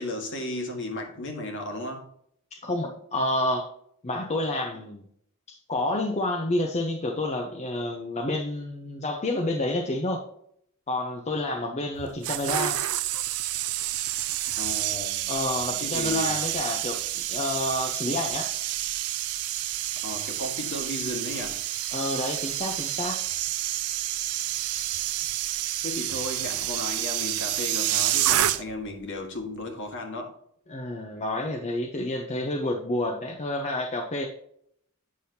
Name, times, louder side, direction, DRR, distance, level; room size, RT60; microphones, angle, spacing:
voice 1, 0.0-2.1 14.6-15.3 15.8-16.4 19.9-21.6 25.8-30.3, left 2 dB, 60° left, 2 dB, 1.6 m, -34 dB
voice 2, 2.5-3.7 4.0-5.0 5.5-10.2 10.9-12.8 15.3-18.5 21.9-23.2 30.7-34.3, left 1 dB, 30° left, 2 dB, 0.7 m, -29 dB
sound 1, 12.0-28.9 29.2-29.5, right 13 dB, 85° right, 0.5 m, -29 dB
8.5 x 6.1 x 2.8 m, 0.69 s
head